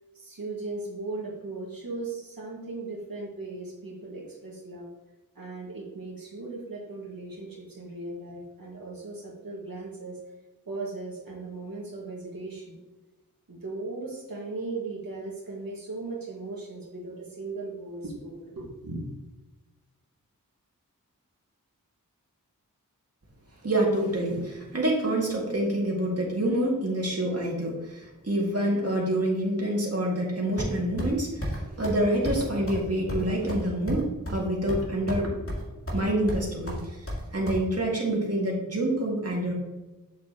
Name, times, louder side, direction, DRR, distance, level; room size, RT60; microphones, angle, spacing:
voice 1, 0.1-4.9 5.4-10.2 10.7-12.8 13.5-19.1, right 3 dB, 90° right, -4 dB, 2.0 m, -37 dB
voice 2, 23.6-35.4 35.9-37.0 37.3-39.5, right 1 dB, 45° right, -3 dB, 2.0 m, -27 dB
sound 1, 30.6-31.1 31.4-31.6 31.8-32.0 32.2-32.4 32.7-32.8 33.1-34.4 34.7-35.2 35.5-36.0 36.3-37.6, equal, 40° left, 2.3 m, -31 dB
7.3 x 7.0 x 2.9 m, 1.1 s
wide cardioid pair, 50°, 34 cm